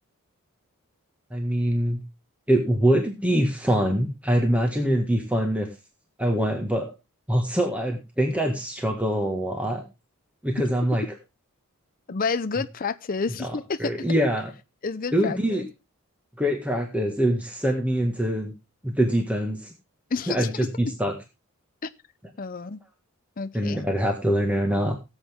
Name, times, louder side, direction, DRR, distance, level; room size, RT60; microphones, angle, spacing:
voice 1, 1.3-2.0 2.5-5.7 6.2-6.9 7.3-9.8 10.4-11.1 13.4-14.5 15.1-15.6 16.4-18.5 18.8-19.7 20.3-21.1 23.5-24.9, equal, 5° right, 1.7 m, -24 dB
voice 2, 12.1-13.9 14.8-15.6 20.1-20.5 21.8-21.9 22.4-22.8 23.4-23.8, left 4 dB, 40° left, 0.6 m, -29 dB
18.0 x 8.1 x 3.6 m
head